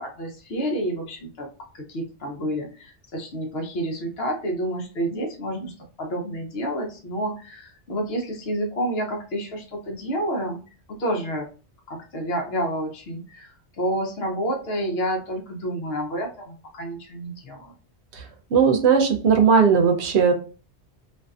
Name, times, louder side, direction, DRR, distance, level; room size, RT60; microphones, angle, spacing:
voice 1, 0.0-1.5 1.7-10.6 10.9-11.5 11.9-17.7, right 1 dB, 65° left, 2 dB, 0.9 m, -29 dB
voice 2, 18.5-20.3, right 6 dB, 75° right, 4 dB, 0.9 m, -17 dB
2.5 x 2.5 x 2.3 m, 0.36 s
omnidirectional pair, 1.1 m